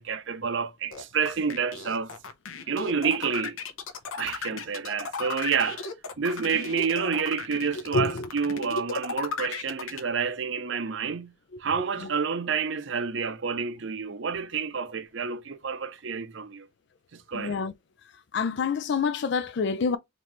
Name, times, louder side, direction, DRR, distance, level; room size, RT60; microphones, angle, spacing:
voice 1, 0.0-2.1 2.7-3.6 4.2-5.9 6.2-11.3 11.6-16.7 17.1-17.6, right 6 dB, 60° right, 0.6 m, -29 dB
sound 1, 0.9-10.0, left 4 dB, 80° left, 0.8 m, -35 dB
voice 2, 17.3-17.7 18.3-20.0, left 4 dB, 55° left, 0.3 m, -27 dB
4.0 x 3.1 x 3.0 m
head